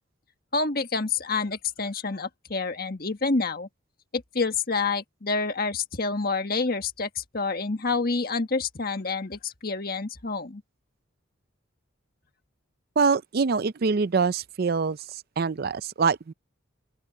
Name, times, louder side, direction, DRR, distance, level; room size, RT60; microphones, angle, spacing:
voice 1, 0.5-3.7 4.1-10.6, left 4 dB, 45° left, 1.5 m, -28 dB
voice 2, 13.0-16.3, right 5 dB, 50° right, 0.4 m, -25 dB
open air
head